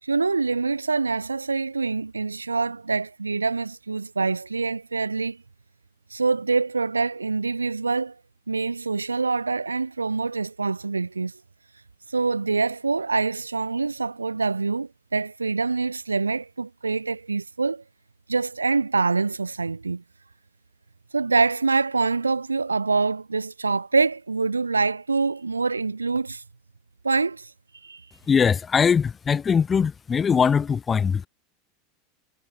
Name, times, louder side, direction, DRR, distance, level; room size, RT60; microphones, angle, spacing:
voice 1, 0.0-5.4 6.1-8.2 8.5-11.3 12.1-17.8 18.3-20.0 21.1-26.4 27.0-27.5 27.8-28.0, right 4 dB, 80° right, 5.2 m, -25 dB
voice 2, 28.3-31.3, left 6 dB, 20° left, 2.8 m, -21 dB
figure-of-eight pair, 80°, 0 cm